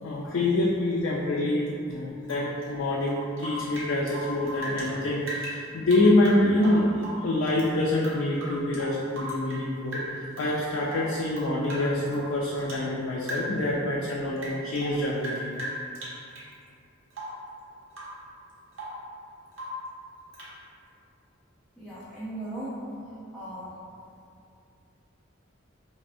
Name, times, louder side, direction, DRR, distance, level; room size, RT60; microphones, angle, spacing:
voice 1, 0.0-15.6, left 1 dB, 85° left, -4 dB, 0.4 m, -26 dB
Rain / Drip, 2.2-4.9 5.2-7.7 8.0-9.7 9.9-10.6 10.9-12.9 13.2-13.7 14.0-16.5 17.1-17.5 17.9-18.2 18.5-19.1 19.5-19.9 20.3-20.6, equal, 75° right, 0.8 m, -38 dB
voice 2, 21.8-23.7, right 1 dB, 5° left, -12 dB, 0.5 m, -38 dB
4.1 x 2.0 x 2.5 m, 2.4 s
head